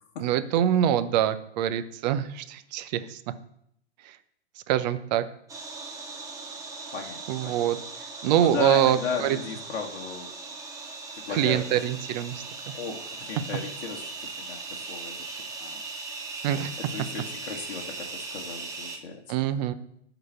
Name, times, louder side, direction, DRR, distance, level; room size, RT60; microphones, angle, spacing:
voice 1, 0.2-3.3 4.0-4.2 4.7-5.3 7.3-7.8 8.2-9.4 11.3-12.7 16.4-16.7 19.3-19.7, right 11 dB, 35° right, 11 dB, 0.8 m, -25 dB
sound 1, 5.5-19.0, right 3 dB, 10° right, 1.2 m, -39 dB
voice 2, 6.9-7.6 8.4-10.3 11.1-11.6 12.7-15.1 15.6-15.8 16.9-19.2, left 5 dB, 50° left, 0 dB, 1.5 m, -35 dB
11.0 x 4.1 x 6.8 m, 0.71 s
hypercardioid pair, 120°, 35 cm